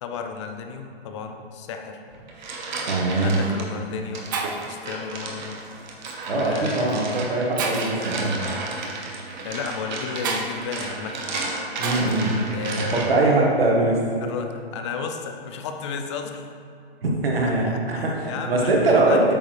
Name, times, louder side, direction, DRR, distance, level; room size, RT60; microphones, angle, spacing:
voice 1, 0.0-2.0 3.2-4.2 4.6-5.6 6.3-7.2 9.4-11.5 12.5-13.1 14.2-16.4 17.4-18.7 19.1-19.3, left 6 dB, 30° left, 4 dB, 0.5 m, -33 dB
sound 1, 2.1-3.7 4.1-13.3, right 3 dB, 45° right, 1.3 m, -33 dB
voice 2, 2.9-3.4 6.3-7.0 7.3-8.3 11.8-12.4 12.8-14.0 17.0-19.3, right 2 dB, 65° right, -2 dB, 1.7 m, -21 dB
Shatter, 3.1-3.3 4.0-4.1 4.3-4.8 6.1-6.3 6.9-7.0 7.6-8.1 10.2-10.5 11.8-12.2, right 4 dB, 20° right, 0.4 m, -29 dB
8.6 x 6.3 x 3.3 m, 2.5 s
hypercardioid pair, 135°, 32 cm